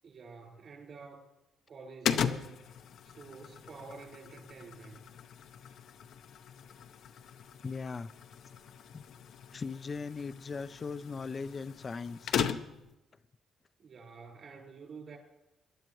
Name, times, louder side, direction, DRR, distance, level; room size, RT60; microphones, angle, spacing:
voice 1, 0.0-1.2 1.7-2.6 3.0-5.1 13.8-15.2, right 4 dB, 55° right, 4.5 m, -49 dB
sound 1, 2.0-12.9, left 8 dB, 70° left, 0.7 m, -38 dB
voice 2, 7.6-8.1 8.9-9.0 9.5-12.4, left 4 dB, 35° left, 0.4 m, -39 dB
23.0 x 11.0 x 3.1 m
cardioid pair, 90°, 0 cm